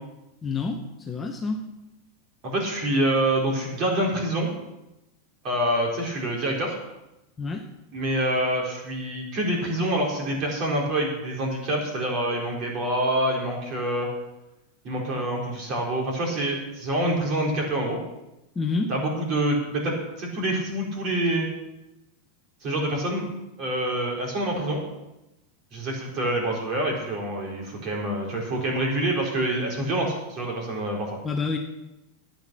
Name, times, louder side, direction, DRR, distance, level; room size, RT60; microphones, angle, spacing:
voice 1, 0.4-1.7 7.4-7.7 18.5-18.9 31.2-31.6, left 4 dB, 15° left, 2 dB, 0.9 m, -28 dB
voice 2, 2.4-4.5 5.4-6.8 7.9-14.1 14.8-18.0 18.9-21.5 22.6-23.3 23.6-24.8 25.7-31.2, right 1 dB, 35° right, -1 dB, 4.0 m, -26 dB
12.0 x 9.4 x 6.1 m, 0.94 s
supercardioid pair, 160°, 0 cm